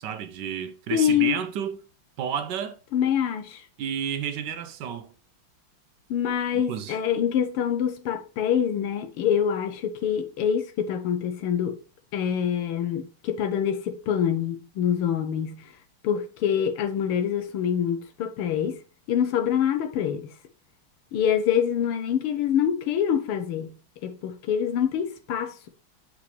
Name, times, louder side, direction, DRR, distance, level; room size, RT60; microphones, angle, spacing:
voice 1, 0.0-1.8 2.2-2.8 3.8-5.1 6.7-7.0, right 8 dB, 65° right, 1.2 m, -31 dB
voice 2, 0.9-1.4 2.9-3.6 6.1-11.8 12.1-15.6 16.0-18.8 19.1-20.3 21.1-23.7 24.0-25.7, left 9 dB, 80° left, 1.7 m, -25 dB
8.2 x 5.1 x 3.1 m
omnidirectional pair, 2.4 m